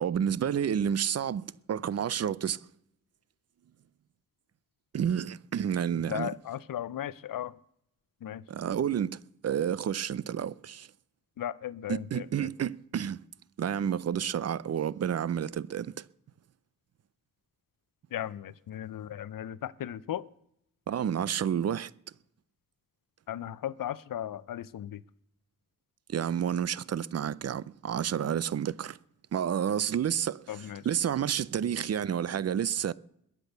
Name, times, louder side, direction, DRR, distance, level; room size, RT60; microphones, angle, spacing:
voice 1, 0.0-2.6 4.9-6.3 8.5-9.2 9.4-10.9 11.9-13.2 13.6-16.1 20.9-21.9 26.1-29.0 29.3-30.4 30.8-32.9, right 8 dB, 50° right, 0.5 m, -30 dB
voice 2, 6.1-7.6 8.2-8.4 11.4-12.3 18.1-20.2 23.3-25.0 30.5-30.9, left 11 dB, 85° left, 0.7 m, -36 dB
21.5 x 8.3 x 6.7 m
wide cardioid pair, 160°, 32 cm